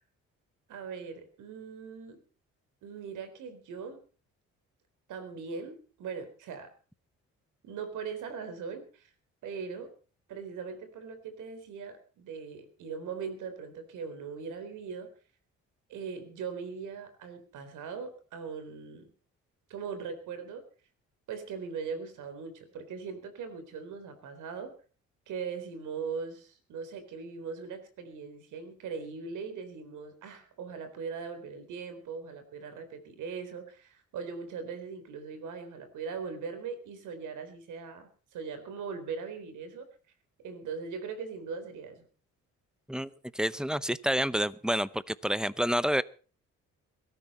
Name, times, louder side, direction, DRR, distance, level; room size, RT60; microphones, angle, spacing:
voice 1, 0.7-2.2 2.8-4.0 5.1-6.7 7.6-9.1 9.4-9.9 10.3-15.1 15.9-19.1 19.7-20.6 21.3-24.7 25.3-39.9 40.4-42.1, right 5 dB, 85° right, 10 dB, 4.0 m, -40 dB
voice 2, 42.9-46.0, equal, ahead, 17 dB, 0.8 m, -29 dB
22.0 x 13.5 x 4.3 m, 0.38 s
cardioid pair, 90°, 30 cm